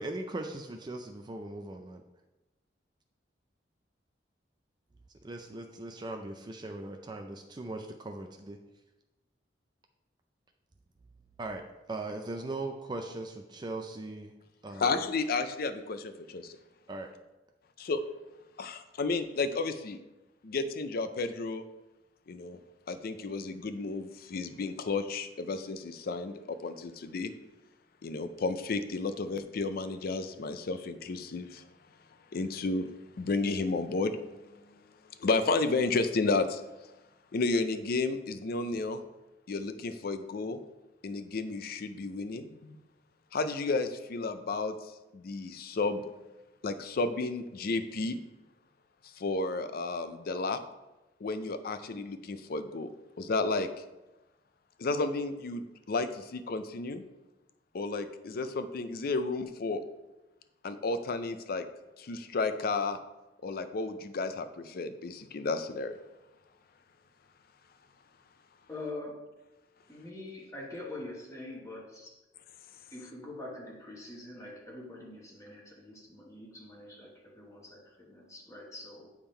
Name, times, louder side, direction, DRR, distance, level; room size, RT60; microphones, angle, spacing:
voice 1, 0.0-2.0 5.2-8.6 11.4-14.3 14.6-15.1 16.9-17.1, right 2 dB, 25° right, 4 dB, 0.4 m, -39 dB
voice 2, 14.8-16.5 17.8-18.0 18.6-20.0 20.4-21.6 22.3-22.6 22.9-27.3 28.0-31.6 32.3-32.9 33.2-34.1 35.2-36.6 37.3-39.0 39.5-40.6 41.0-42.8 43.3-44.8 45.1-46.0 46.6-48.2 49.2-50.6 51.2-52.9 53.2-53.7 54.8-57.0 57.7-59.8 60.6-61.7 62.0-63.0 63.4-66.0, left 3 dB, 55° left, 10 dB, 0.5 m, -32 dB
voice 3, 68.7-69.3 69.9-72.1 72.9-79.1, left 2 dB, 20° left, -2 dB, 1.1 m, -44 dB
8.9 x 3.6 x 4.3 m, 1.0 s
head